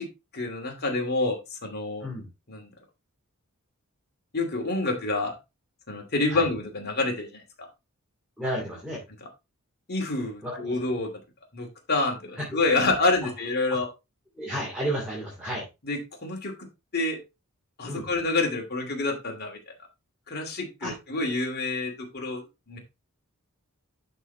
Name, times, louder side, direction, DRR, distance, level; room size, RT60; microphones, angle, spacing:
voice 1, 0.3-2.1 2.5-2.7 4.3-5.3 5.9-7.7 9.9-11.1 11.5-13.9 15.8-16.7 16.9-17.2 17.8-19.7 20.3-22.8, left 2 dB, 45° left, 2 dB, 2.5 m, -28 dB
voice 2, 8.4-9.0 10.4-10.8 12.4-12.6 14.3-15.7 17.9-18.1 20.8-20.9, equal, 5° right, -4 dB, 2.5 m, -32 dB
11.5 x 4.3 x 3.2 m, 0.25 s
head